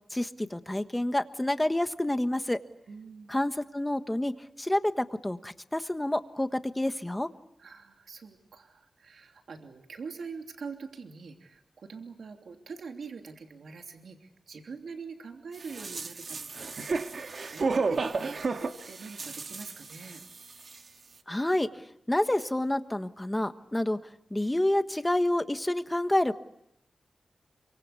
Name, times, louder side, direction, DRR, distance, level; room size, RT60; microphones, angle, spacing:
voice 1, 0.1-2.6 3.3-4.3 4.6-7.3 21.3-21.8 22.1-24.0 24.3-26.4, left 1 dB, 10° left, 9 dB, 1.4 m, -28 dB
voice 2, 2.9-3.4 7.6-16.9 17.2-20.2, right 5 dB, 85° right, 3 dB, 3.0 m, -44 dB
sound 1, 15.6-20.4 20.7-20.8, right 4 dB, 55° right, 1.8 m, -32 dB
28.0 x 25.0 x 8.3 m, 0.76 s
wide cardioid pair, 150°, 0 cm